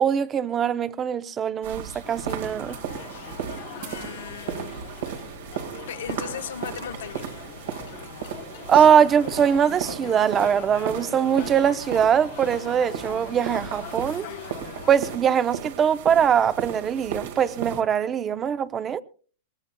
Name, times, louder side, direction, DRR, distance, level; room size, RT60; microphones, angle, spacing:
voice 1, 0.0-2.8 8.7-14.3 14.9-19.0, right 8 dB, 25° right, 0.6 m, -22 dB
sound 1, 1.6-17.8, right 8 dB, 70° right, 1.8 m, -35 dB
sound 2, 2.0-15.2, left 13 dB, 60° left, 0.8 m, -42 dB
voice 2, 3.8-4.8 5.9-7.4 8.7-8.9, left 8 dB, 80° left, 1.1 m, -37 dB
21.0 x 19.5 x 2.2 m
hypercardioid pair, 140°, 0 cm